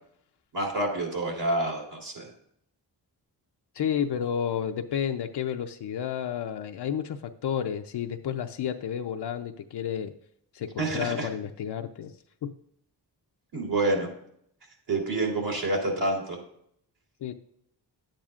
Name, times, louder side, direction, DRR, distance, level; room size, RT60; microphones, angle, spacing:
voice 1, 0.5-2.3 10.8-11.3 13.5-14.1 14.9-16.4, right 2 dB, 70° right, 0 dB, 3.5 m, -28 dB
voice 2, 3.7-10.1 10.5-12.1 12.4-12.5 15.4-15.5 17.2-17.3, left 8 dB, 70° left, 5 dB, 0.7 m, -31 dB
11.5 x 8.8 x 2.5 m, 0.70 s
cardioid pair, 75°, 41 cm